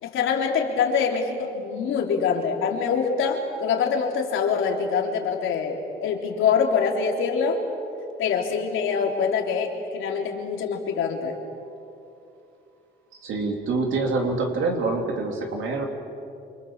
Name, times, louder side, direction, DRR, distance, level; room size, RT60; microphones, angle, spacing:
voice 1, 0.0-7.6 8.2-11.3, left 6 dB, 85° left, 1 dB, 3.7 m, -24 dB
voice 2, 13.2-15.9, right 3 dB, 80° right, 2 dB, 3.6 m, -26 dB
28.5 x 25.0 x 7.5 m, 2.7 s
cardioid pair, 90°, 20 cm